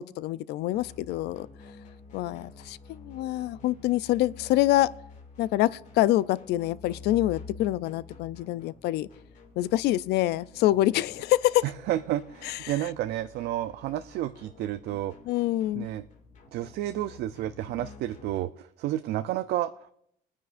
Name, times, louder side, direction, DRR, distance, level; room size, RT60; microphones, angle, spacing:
voice 1, 0.0-1.5 2.1-4.9 5.4-9.1 9.6-11.6 12.4-12.9 15.2-15.9, left 15 dB, 80° left, 0.4 m, -26 dB
sound 1, 0.7-18.4, left 4 dB, 45° left, 2.2 m, -49 dB
voice 2, 11.9-15.1 15.8-16.0 16.5-19.9, right 13 dB, 75° right, 0.4 m, -31 dB
22.5 x 9.6 x 2.5 m
cardioid pair, 110°, 17 cm